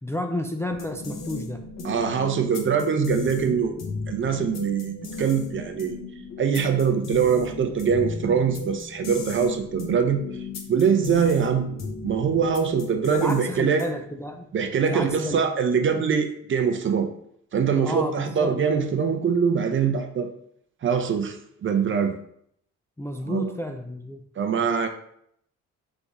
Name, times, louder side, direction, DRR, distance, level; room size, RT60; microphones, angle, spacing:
voice 1, 0.0-1.6 13.0-14.5 14.8-15.5 17.8-18.5 23.0-24.2, left 1 dB, 10° left, 3 dB, 0.4 m, -31 dB
sound 1, 0.7-14.1, left 4 dB, 60° left, 1.0 m, -36 dB
voice 2, 1.8-3.7 4.1-5.9 6.4-10.2 10.7-11.7 12.0-13.8 14.5-17.1 17.5-20.3 20.8-22.1 23.3-23.5 24.4-24.9, right 6 dB, 40° right, 6 dB, 0.6 m, -23 dB
3.6 x 3.5 x 4.1 m, 0.70 s
cardioid pair, 90°, 30 cm